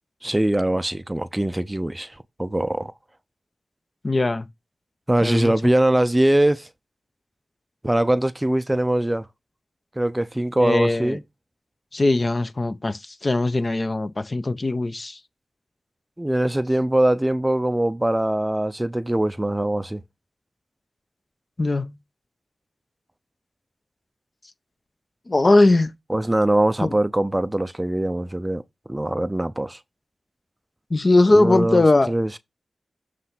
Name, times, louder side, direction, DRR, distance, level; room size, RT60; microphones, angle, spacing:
voice 1, 0.2-2.9 5.1-6.7 7.8-9.3 10.0-11.2 16.2-20.0 26.1-28.6 28.9-29.8 31.3-32.4, right 1 dB, 15° right, 0.5 m, -22 dB
voice 2, 4.0-4.5 5.2-5.5 10.6-11.2 11.9-15.2 21.6-21.9 25.3-25.9 26.8-26.9 30.9-32.1, left 2 dB, 40° left, 0.8 m, -20 dB
7.6 x 3.3 x 5.8 m
cardioid pair, 60°, 0 cm